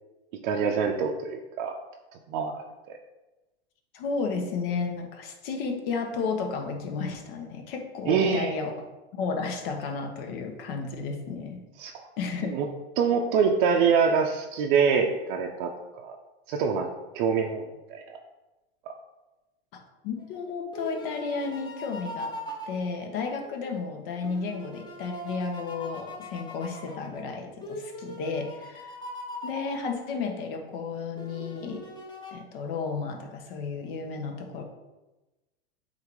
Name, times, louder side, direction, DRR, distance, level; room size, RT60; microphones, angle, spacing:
voice 1, 0.4-1.8 2.3-2.6 8.1-8.5 11.8-12.0 12.5-12.7 13.0-16.2 16.5-18.2 18.9-19.0, right 6 dB, 50° right, 2 dB, 0.7 m, -25 dB
voice 2, 3.9-8.7 9.1-11.6 12.2-12.6 19.7-22.3 22.7-28.9 29.4-31.8 32.3-34.6, left 4 dB, 55° left, 4 dB, 1.3 m, -33 dB
sound 1, 20.2-23.7 24.2-30.4 31.2-32.3, equal, 15° left, 1.0 m, -41 dB
8.0 x 2.8 x 4.7 m, 1.1 s
hypercardioid pair, 125°, 33 cm